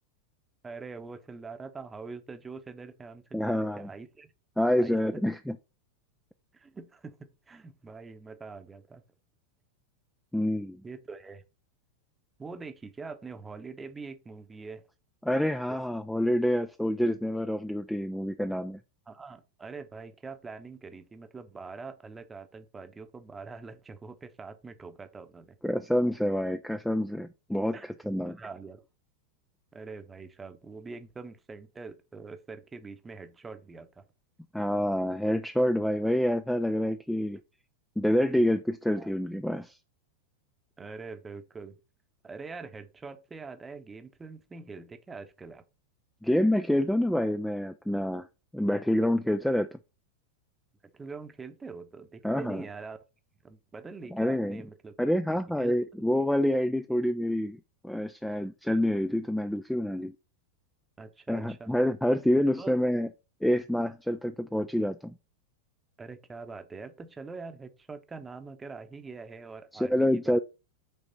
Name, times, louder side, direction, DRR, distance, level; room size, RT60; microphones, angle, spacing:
voice 1, 0.6-4.3 4.8-5.2 6.5-9.0 10.8-11.4 12.4-14.8 19.1-25.6 27.7-28.8 29.7-34.0 38.3-38.5 39.0-39.1 40.8-41.8 42.2-45.6 50.8-53.0 53.4-54.9 55.6-55.8 61.0-61.7 62.6-62.8 66.0-70.4, right 4 dB, 15° right, 0.9 m, -44 dB
voice 2, 3.3-3.9 4.6-5.6 10.3-10.8 15.2-18.8 25.6-28.4 34.5-37.4 38.0-39.8 46.2-48.3 48.5-49.8 52.2-52.6 54.1-54.6 55.0-57.6 57.8-60.1 61.3-63.1 63.4-65.1 69.7-70.4, left 1 dB, ahead, 0.4 m, -27 dB
9.0 x 3.5 x 4.0 m
figure-of-eight pair, 90°, 0 cm